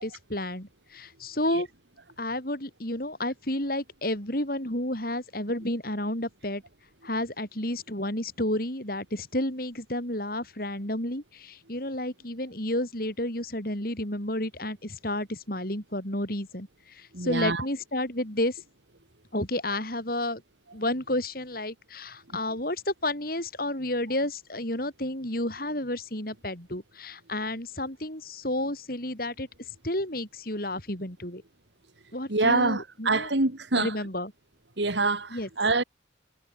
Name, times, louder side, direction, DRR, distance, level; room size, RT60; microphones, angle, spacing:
voice 1, 0.0-1.7 2.2-6.6 7.0-18.6 19.3-20.4 20.7-29.5 29.8-31.4 32.1-33.3 33.7-34.3 35.3-35.5, left 1 dB, 50° left, 7.4 m, -31 dB
voice 2, 17.1-17.6 32.3-33.9 34.8-35.8, right 3 dB, 70° right, 2.5 m, -25 dB
head